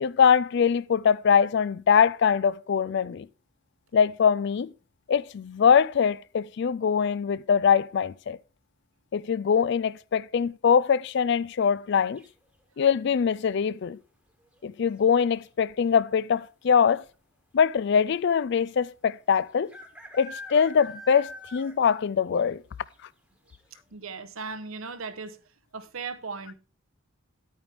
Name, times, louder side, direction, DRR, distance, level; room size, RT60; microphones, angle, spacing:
voice 1, 0.0-3.3 3.9-4.7 5.1-8.4 9.1-12.2 12.8-14.0 14.6-17.0 17.5-19.7 20.1-22.6, left 7 dB, 55° left, 0.4 m, -23 dB
sound 1, 12.2-12.6 14.4-14.8 15.1-15.2 15.4-16.0 16.7-16.8 17.0-17.1 18.7-18.8 19.7-22.0 22.4-22.5 22.9-23.0 23.5-23.6, left 1 dB, 5° right, 1.3 m, -44 dB
voice 2, 23.9-25.4 25.7-26.5, right 4 dB, 85° right, 1.0 m, -37 dB
9.8 x 8.9 x 3.5 m
head